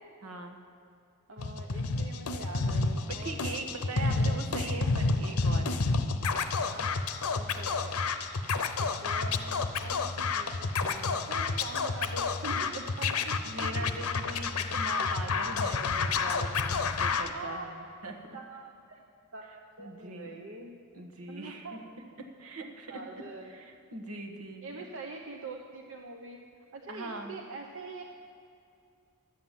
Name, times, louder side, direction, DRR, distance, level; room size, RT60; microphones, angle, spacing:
voice 1, 0.2-0.6 3.1-5.8 13.4-18.2 19.8-20.3 20.9-21.7 22.2-23.0 23.5-24.9 26.9-27.3, right 2 dB, 85° right, 3 dB, 1.3 m, -41 dB
voice 2, 1.3-4.4 6.5-6.9 7.4-8.0 8.8-13.8 15.0-15.1 17.3-17.6 18.0-19.0 19.3-20.7 21.3-21.8 22.6-23.6 24.6-26.4 26.7-28.0, right 3 dB, 65° right, 2 dB, 0.8 m, -44 dB
Scratching (performance technique), 1.4-17.3, left 4 dB, 85° left, 0.7 m, -30 dB
11.5 x 7.8 x 7.4 m, 2.5 s
head